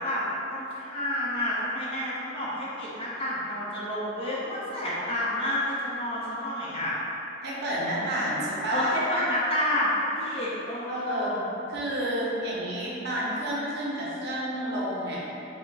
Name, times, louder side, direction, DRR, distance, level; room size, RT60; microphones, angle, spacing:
voice 1, 0.0-6.9 8.7-11.4, left 1 dB, 30° left, -8 dB, 0.7 m, -29 dB
voice 2, 7.4-8.9 10.9-11.4 11.7-15.3, right 1 dB, 55° right, -6 dB, 0.7 m, -30 dB
3.4 x 2.1 x 3.9 m, 2.9 s
head